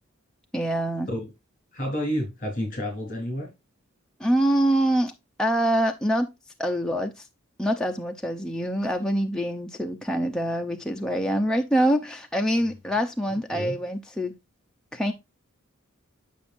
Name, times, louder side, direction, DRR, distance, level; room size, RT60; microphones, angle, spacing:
voice 1, 0.5-1.1 4.2-5.1 5.4-6.3 6.6-7.3 7.6-14.3 14.9-15.1, right 1 dB, 5° left, 0.7 m, -25 dB
voice 2, 1.7-3.5 13.5-13.7, equal, 40° left, 3.7 m, -30 dB
10.0 x 6.2 x 2.6 m
head